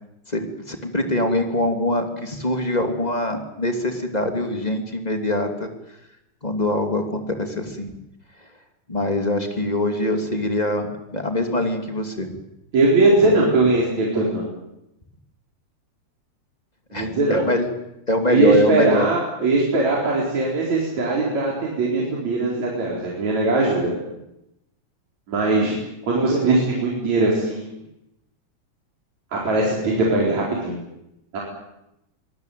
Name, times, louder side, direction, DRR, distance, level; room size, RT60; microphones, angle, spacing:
voice 1, 0.3-5.7 6.4-7.9 8.9-12.3 13.1-13.5 16.9-17.7 18.1-19.1, left 1 dB, 15° left, 5 dB, 2.5 m, -23 dB
voice 2, 12.7-14.5 16.9-17.4 18.3-24.0 25.3-25.8 26.0-27.6 29.3-30.8 31.3-31.4, right 2 dB, 70° right, -3 dB, 5.8 m, -20 dB
25.0 x 18.5 x 9.3 m, 0.85 s
omnidirectional pair, 3.4 m